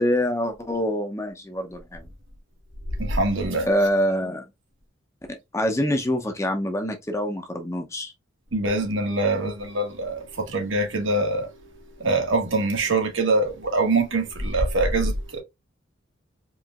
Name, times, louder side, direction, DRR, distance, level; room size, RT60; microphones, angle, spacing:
voice 1, 0.0-2.1 3.7-4.4 5.3-8.1, equal, 15° left, 0.7 m, -25 dB
voice 2, 3.0-3.7 8.5-11.5 12.0-15.4, right 2 dB, 75° right, 1.5 m, -24 dB
4.6 x 3.1 x 2.4 m
head